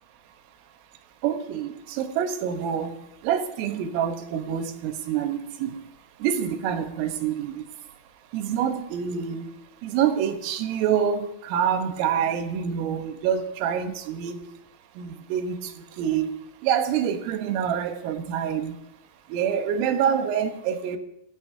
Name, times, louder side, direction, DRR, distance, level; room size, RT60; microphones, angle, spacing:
voice 1, 1.2-3.0 3.2-5.8 6.2-7.6 8.3-9.5 9.8-14.4 15.0-15.6 16.0-16.3 16.6-18.8 19.3-21.0, right 8 dB, 80° right, 3.8 m, -26 dB
27.5 x 18.5 x 2.8 m
omnidirectional pair, 6.0 m